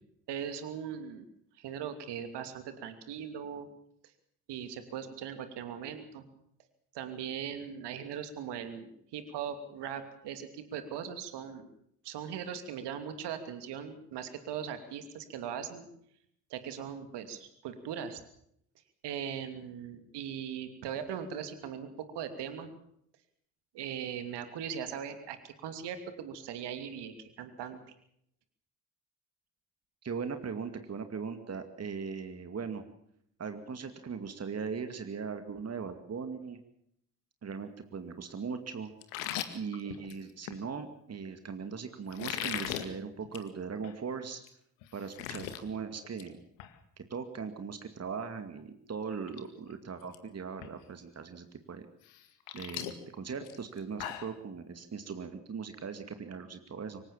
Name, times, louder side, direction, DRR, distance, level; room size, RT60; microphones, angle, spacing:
voice 1, 0.3-1.2 1.6-3.7 4.5-6.2 6.9-11.7 12.0-15.9 16.5-18.2 19.0-22.7 23.7-27.8, right 8 dB, 60° right, 9 dB, 2.9 m, -39 dB
voice 2, 30.0-32.8 33.4-36.6 37.4-38.9 39.5-44.4 44.9-46.4 47.0-51.9 52.5-57.0, right 5 dB, 30° right, 8 dB, 2.4 m, -39 dB
sound 1, 39.0-40.6 42.1-42.9 43.2-43.5 43.8-43.9 44.4-44.5 44.8-45.6 46.0-46.3 46.6-46.7 48.6-48.7 49.1-49.4 49.7-50.2 50.6-50.7 52.0-54.3, left 12 dB, 65° left, 2.1 m, -39 dB
25.0 x 16.0 x 7.3 m, 0.71 s
figure-of-eight pair, 45°, 47 cm